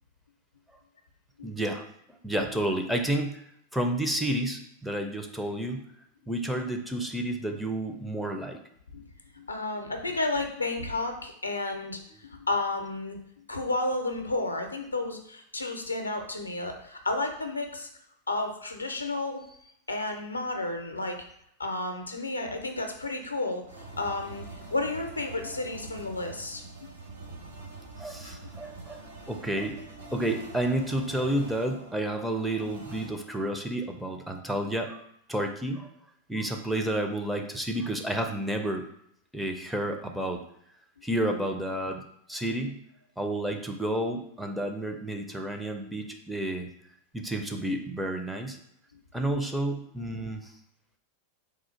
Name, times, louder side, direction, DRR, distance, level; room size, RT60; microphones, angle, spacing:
voice 1, 1.4-1.8 2.2-3.4 3.7-5.9 6.3-8.6 28.0-29.0 29.3-29.8 30.1-35.0 35.3-35.9 36.3-38.8 39.3-40.4 41.0-42.0 42.3-42.8 43.2-46.7 47.1-48.6 49.1-50.5, right 1 dB, ahead, 3 dB, 0.4 m, -30 dB
voice 2, 9.4-13.2 13.5-17.9 18.3-19.4 19.9-21.2 21.6-23.6 24.0-26.9 28.2-28.4, left 2 dB, 80° left, 4 dB, 0.5 m, -32 dB
sound 1, 23.7-33.1, right 3 dB, 70° right, 0.8 m, -45 dB
3.6 x 2.4 x 4.3 m, 0.72 s
figure-of-eight pair, 90°, 0 cm